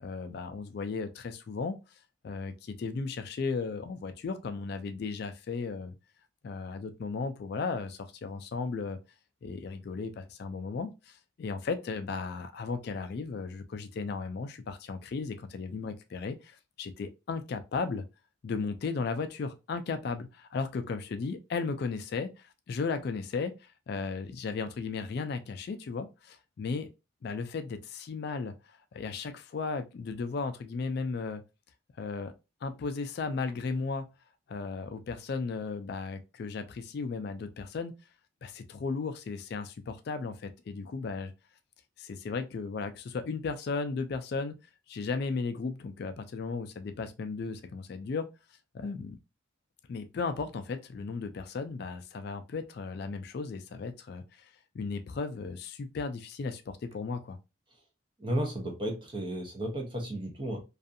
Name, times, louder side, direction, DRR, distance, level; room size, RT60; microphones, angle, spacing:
voice 1, 0.0-1.8 2.2-6.0 6.4-9.0 9.4-18.0 18.4-26.9 27.2-31.4 32.0-32.3 32.6-34.1 34.5-37.9 38.4-41.3 42.0-44.6 44.9-48.3 48.7-49.2 49.9-57.4, left 4 dB, 50° left, 0.3 m, -35 dB
voice 2, 58.2-60.6, right 1 dB, 25° right, 0.6 m, -33 dB
2.5 x 2.4 x 2.5 m
head